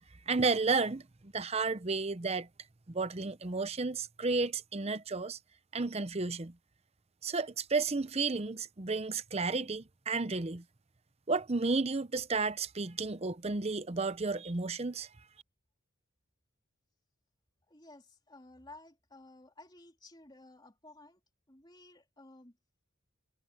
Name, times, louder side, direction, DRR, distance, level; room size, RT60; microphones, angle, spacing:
voice 1, 0.3-2.5 2.9-5.4 5.7-6.5 7.2-10.6 11.3-15.1, right 4 dB, 30° right, 0.7 m, -32 dB
voice 2, 17.7-21.2 21.5-22.6, left 2 dB, 20° left, 3.5 m, -55 dB
head